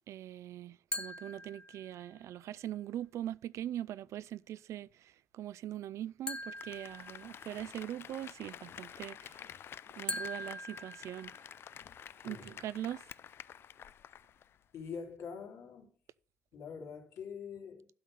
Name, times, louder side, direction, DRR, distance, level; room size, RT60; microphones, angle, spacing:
voice 1, 0.1-9.5 10.0-11.3 12.2-13.0, right 12 dB, 70° right, 0.4 m, -42 dB
sound 1, 0.9-2.2 6.3-7.8 10.1-11.8, left 2 dB, 20° left, 0.8 m, -42 dB
Applause, 6.4-14.6 14.9-15.0, left 9 dB, 50° left, 0.4 m, -50 dB
voice 2, 14.7-15.9 16.5-17.9, left 6 dB, 75° left, 3.1 m, -44 dB
12.0 x 4.2 x 7.4 m
cardioid pair, 150°, 5 cm